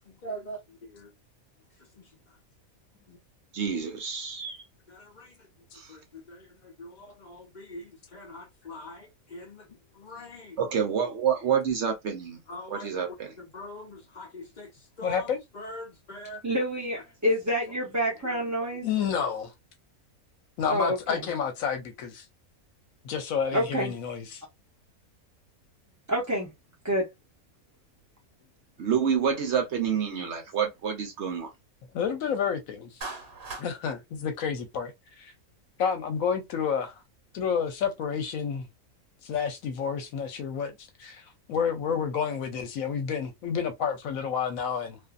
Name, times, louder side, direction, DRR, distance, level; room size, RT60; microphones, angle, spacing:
voice 1, 0.1-1.1 2.0-2.1 3.1-3.2 4.9-5.5 5.9-10.6 12.5-13.0 13.4-14.7 15.0-15.3 15.5-16.4 18.2-18.5, equal, 60° left, 0.4 m, -43 dB
voice 2, 3.5-4.6 5.7-6.0 10.6-12.4 12.7-13.4 28.8-31.5, right 7 dB, 60° right, 0.8 m, -28 dB
voice 3, 15.0-15.4 18.8-19.5 20.6-22.3 23.0-24.4 31.9-33.1 33.6-35.3 35.8-37.0 37.3-38.7 39.2-45.0, left 7 dB, 75° left, 1.0 m, -30 dB
voice 4, 16.4-18.9 20.7-21.2 23.5-23.9 26.1-26.5 26.8-27.1, equal, 25° right, 0.3 m, -27 dB
Clapping, 33.0-33.7, right 3 dB, 45° right, 1.2 m, -38 dB
2.5 x 2.5 x 2.3 m
omnidirectional pair, 1.5 m